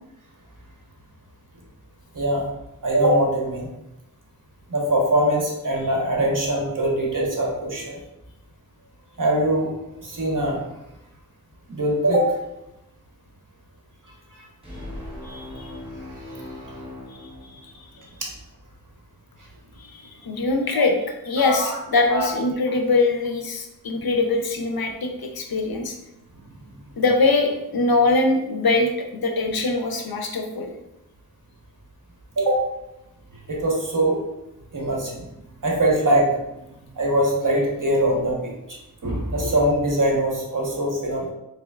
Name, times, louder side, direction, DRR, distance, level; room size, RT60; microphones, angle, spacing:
voice 1, 2.1-2.5 2.8-3.7 4.7-7.9 9.2-9.7 10.0-10.7 11.7-12.4 14.3-14.4 18.2-18.3 20.7-20.8 21.4-21.8 22.1-22.3 32.4-32.6 33.5-34.2 34.7-35.3 35.6-36.3 37.0-41.3, right 1 dB, 55° right, -1 dB, 1.1 m, -22 dB
sound 1, 14.6-18.1, left 1 dB, 15° right, 1.2 m, -39 dB
voice 2, 15.2-15.7 17.1-17.2 17.6-17.9 19.8-20.9 21.3-26.0 27.0-30.7, left 3 dB, 75° left, 3 dB, 0.6 m, -23 dB
3.8 x 3.3 x 2.3 m, 0.89 s
wide cardioid pair, 55°, 37 cm